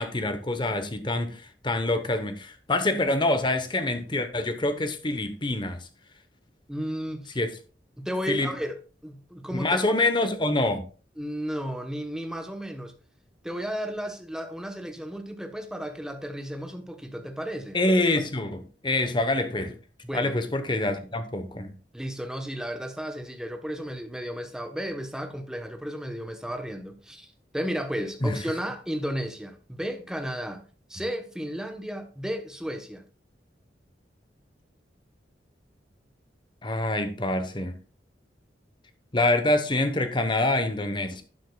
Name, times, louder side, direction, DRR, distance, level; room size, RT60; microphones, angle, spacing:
voice 1, 0.0-5.9 7.4-7.5 8.3-8.5 9.5-10.9 17.7-19.7 20.1-21.7 28.2-28.4 36.6-37.8 39.1-41.2, left 2 dB, 25° left, 0.9 m, -26 dB
voice 2, 6.7-7.4 8.0-8.8 9.0-9.8 11.2-12.9 13.4-17.8 19.0-19.1 20.0-20.4 21.9-27.3 27.5-30.6 30.9-33.0, equal, 5° right, 1.0 m, -33 dB
12.0 x 7.5 x 2.3 m
head